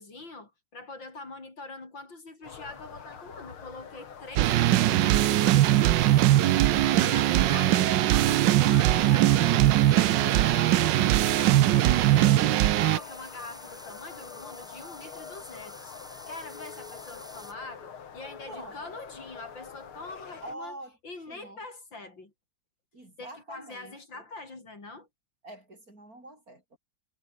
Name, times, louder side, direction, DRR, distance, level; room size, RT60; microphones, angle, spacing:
voice 1, 0.0-6.2 7.0-15.9 16.3-20.8 21.0-22.3 23.2-25.1, left 3 dB, 60° left, 5.9 m, -44 dB
sound 1, 2.4-20.5, left 7 dB, 85° left, 2.9 m, -45 dB
sound 2, 4.4-17.6, equal, ahead, 5.0 m, -49 dB
sound 3, 4.4-13.0, right 14 dB, 70° right, 1.2 m, -21 dB
voice 2, 18.4-19.0 20.4-21.0 21.3-21.6 22.9-24.2 25.4-26.8, right 1 dB, 40° right, 8.0 m, -45 dB
omnidirectional pair, 2.3 m